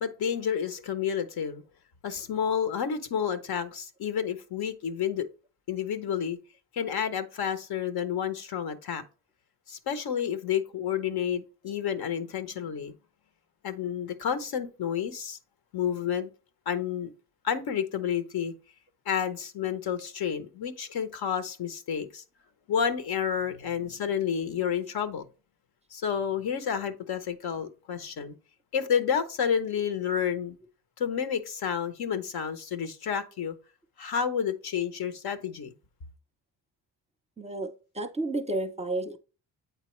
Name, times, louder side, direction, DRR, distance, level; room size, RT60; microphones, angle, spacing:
voice 1, 0.0-1.6 2.0-5.3 5.7-6.4 6.7-9.0 9.7-12.9 13.6-15.4 15.7-16.3 16.7-17.1 17.4-18.5 19.1-22.2 22.7-25.2 25.9-28.3 28.7-30.6 31.0-33.5 34.0-35.7, left 8 dB, 70° left, 0.9 m, -30 dB
voice 2, 37.4-39.2, right 2 dB, 15° right, 0.6 m, -32 dB
8.1 x 4.0 x 3.1 m
cardioid pair, 75°, 39 cm